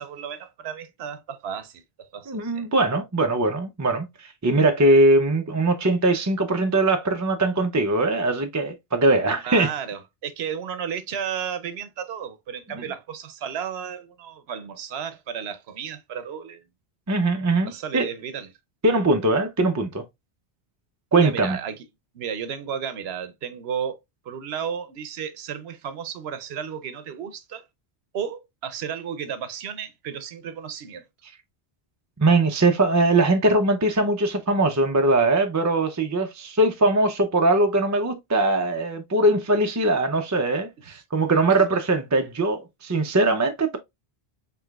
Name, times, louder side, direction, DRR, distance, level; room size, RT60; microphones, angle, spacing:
voice 1, 0.0-2.7 9.4-16.6 17.6-18.5 21.2-21.8 22.1-24.0 24.2-27.7 28.1-31.1 40.9-41.0, right 8 dB, 80° right, 0.9 m, -33 dB
voice 2, 2.3-9.7 12.7-12.8 17.1-18.1 18.8-20.0 21.1-21.6 32.2-43.8, right 2 dB, 30° right, 0.3 m, -21 dB
4.8 x 3.3 x 2.3 m
omnidirectional pair, 1.1 m